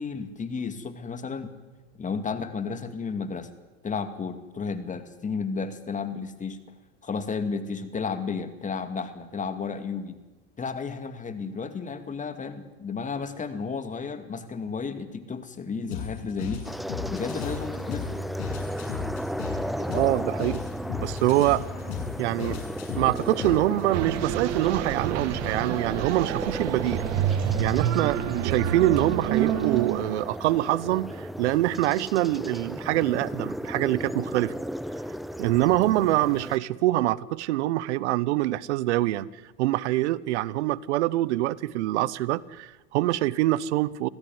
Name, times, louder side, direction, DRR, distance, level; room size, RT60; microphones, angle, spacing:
voice 1, 0.0-1.5 2.0-3.5 3.8-6.6 7.0-10.2 10.6-16.6 17.1-18.2, left 5 dB, 20° left, 9 dB, 2.4 m, -32 dB
sound 1, 15.9-23.9, left 8 dB, 65° left, 7.6 m, -36 dB
sound 2, 16.6-36.6, equal, ahead, 0.7 m, -35 dB
voice 2, 19.8-20.6 21.0-21.6 22.2-22.6 23.0-27.0 27.6-34.5 35.4-39.3 39.6-44.1, right 16 dB, 70° right, 21 dB, 1.1 m, -25 dB
sound 3, 23.9-30.1, right 9 dB, 45° right, 2.2 m, -28 dB
26.0 x 16.0 x 9.6 m, 1.2 s
hypercardioid pair, 100°, 36 cm